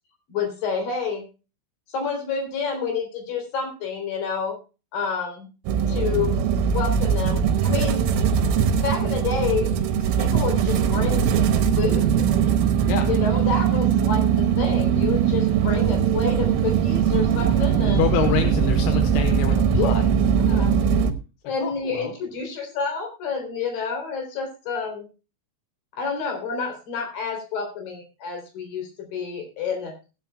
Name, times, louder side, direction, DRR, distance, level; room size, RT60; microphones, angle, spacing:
voice 1, 0.3-1.2 1.9-4.6 4.9-5.5 5.9-8.1 8.8-9.7 10.1-11.3 11.8-12.3 13.1-18.2 19.7-20.0 20.5-20.7 21.4-25.1 25.9-29.9, left 5 dB, 50° left, 3 dB, 5.0 m, -29 dB
sound 1, 5.7-21.1, right 8 dB, 80° right, 3.7 m, -21 dB
voice 2, 17.5-20.0 21.6-22.1, left 10 dB, 80° left, 6 dB, 3.5 m, -27 dB
19.0 x 11.0 x 2.3 m, 0.31 s
omnidirectional pair, 5.6 m